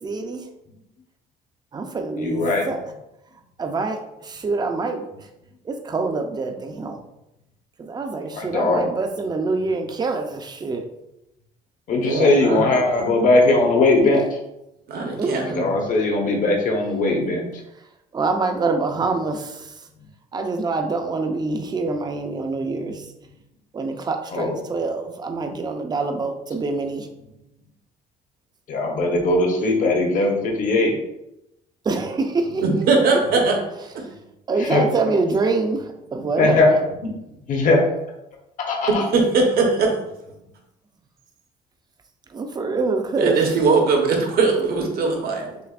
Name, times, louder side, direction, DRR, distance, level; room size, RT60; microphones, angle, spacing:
voice 1, 0.0-0.4 1.7-2.9 3.6-5.3 5.6-7.0 7.8-10.9 15.2-15.4 18.1-19.9 20.3-23.1 23.7-27.1 31.8-32.6 34.5-36.7 42.3-43.4, right 3 dB, 25° right, 5 dB, 0.5 m, -25 dB
voice 2, 2.2-2.6 8.3-8.8 11.9-14.2 15.4-17.4 22.9-23.0 24.3-24.6 28.7-30.9 34.7-34.8 36.4-36.8 37.5-37.8 38.7-39.0, left 2 dB, 50° left, 0 dB, 1.0 m, -19 dB
voice 3, 12.0-12.7 14.9-15.7 32.6-33.6 39.1-39.9 43.2-45.6, right 4 dB, 65° right, 1 dB, 1.0 m, -20 dB
6.6 x 2.5 x 2.4 m, 0.89 s
cardioid pair, 110°, 17 cm